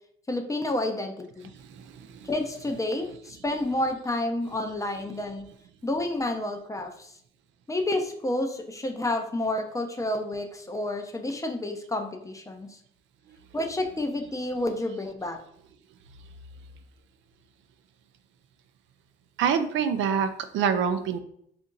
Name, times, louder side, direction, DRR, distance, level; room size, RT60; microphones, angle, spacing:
voice 1, 0.3-1.5 2.2-5.5 5.8-7.1 7.7-12.8 13.5-15.4, left 1 dB, 15° left, 5 dB, 0.5 m, -30 dB
voice 2, 1.5-2.3 19.4-21.2, right 7 dB, 75° right, 9 dB, 0.4 m, -26 dB
2.7 x 2.5 x 3.7 m, 0.69 s
cardioid pair, 90°, 20 cm